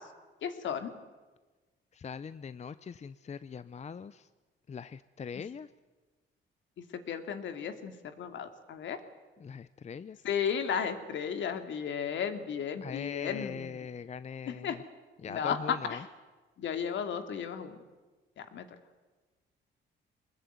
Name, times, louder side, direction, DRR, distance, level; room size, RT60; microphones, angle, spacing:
voice 1, 0.4-0.9 7.1-9.0 10.2-13.7 14.6-14.8 15.2-16.0 16.6-17.8 18.5-18.7, left 7 dB, 70° left, 8 dB, 2.7 m, -34 dB
voice 2, 1.9-4.3 4.7-5.7 9.4-10.2 12.8-14.8 15.2-16.0, left 6 dB, 35° left, 14 dB, 0.7 m, -41 dB
24.0 x 20.5 x 9.4 m, 1.3 s
cardioid pair, 90°, 20 cm